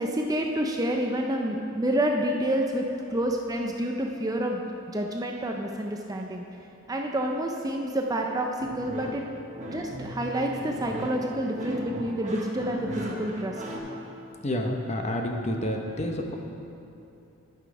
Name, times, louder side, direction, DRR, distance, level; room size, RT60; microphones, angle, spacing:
voice 1, 0.0-2.8 3.1-4.6 4.9-6.4 6.9-9.2 9.7-13.5, right 1 dB, 15° right, 1 dB, 0.5 m, -28 dB
sound 1, 8.6-13.8, right 1 dB, 35° right, 1.1 m, -36 dB
voice 2, 14.4-16.4, left 1 dB, 30° left, 3 dB, 0.7 m, -29 dB
12.5 x 5.9 x 4.8 m, 2.8 s
head